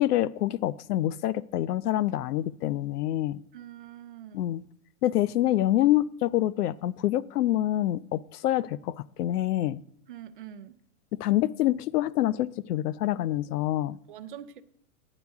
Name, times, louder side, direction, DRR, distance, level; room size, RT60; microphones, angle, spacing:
voice 1, 0.0-3.4 4.3-4.6 5.0-9.8 11.1-14.0, left 14 dB, 80° left, 20 dB, 0.5 m, -26 dB
voice 2, 3.5-4.4 10.1-10.7 14.1-14.6, right 10 dB, 35° right, 11 dB, 0.5 m, -44 dB
10.0 x 9.4 x 3.5 m, 0.72 s
supercardioid pair, 165°, 47 cm